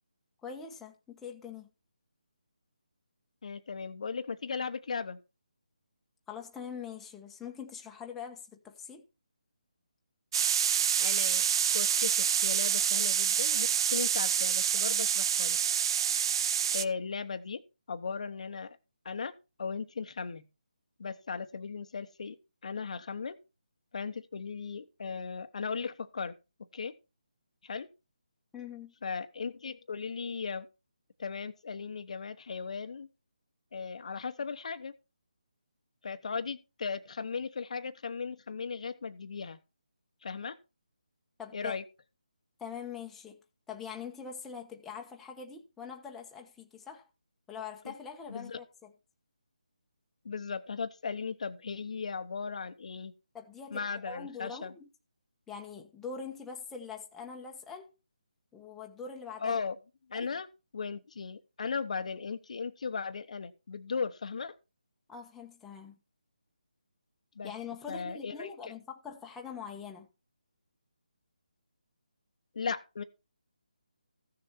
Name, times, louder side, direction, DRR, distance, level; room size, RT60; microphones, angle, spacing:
voice 1, 0.4-1.7 6.3-9.0 28.5-28.9 41.4-41.8 42.6-43.4 43.7-47.1 47.5-48.9 53.3-54.9 55.5-57.9 58.5-59.6 60.1-60.3 65.1-66.0 67.4-70.1, left 6 dB, 5° left, 1.2 m, -43 dB
voice 2, 3.4-5.2 11.0-11.4 11.7-15.6 16.7-17.6 17.9-18.8 19.0-19.3 19.6-20.4 21.0-22.4 22.6-23.4 23.9-26.3 26.7-26.9 27.6-27.9 29.0-30.7 31.2-33.1 33.7-34.9 36.0-39.6 40.2-40.6 41.5-41.8 47.8-47.9 48.3-48.6 50.2-53.1 53.7-54.7 59.4-59.8 60.1-60.5 60.7-64.6 67.4-67.5 67.9-68.5 72.5-73.0, left 5 dB, 55° left, 1.1 m, -37 dB
sound 1, 10.3-16.8, right 8 dB, 35° right, 0.5 m, -27 dB
15.0 x 6.8 x 4.3 m
figure-of-eight pair, 155°, 4 cm